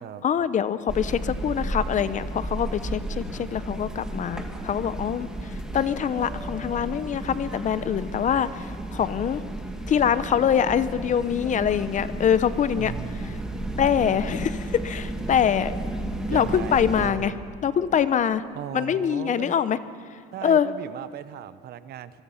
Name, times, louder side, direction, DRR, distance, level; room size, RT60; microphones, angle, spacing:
voice 1, 0.2-9.4 9.9-12.9 13.8-15.7 16.3-17.3 17.6-18.4 18.7-19.8 20.4-20.7, left 8 dB, 40° left, 15 dB, 0.8 m, -24 dB
sound 1, 0.9-17.1, right 1 dB, 5° right, 2.4 m, -33 dB
voice 2, 12.8-14.4 16.3-17.4 18.5-19.6 20.3-22.2, right 11 dB, 55° right, 13 dB, 1.0 m, -38 dB
24.0 x 22.0 x 5.7 m, 2.2 s
supercardioid pair, 105°, 20 cm